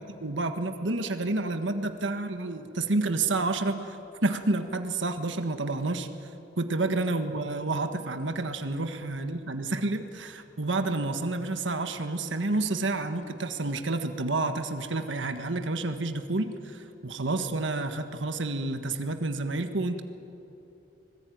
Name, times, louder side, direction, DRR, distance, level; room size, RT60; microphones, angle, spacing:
voice 1, 0.2-6.3 6.6-20.0, right 2 dB, 85° right, 7 dB, 1.5 m, -29 dB
25.5 x 20.5 x 9.4 m, 3.0 s
head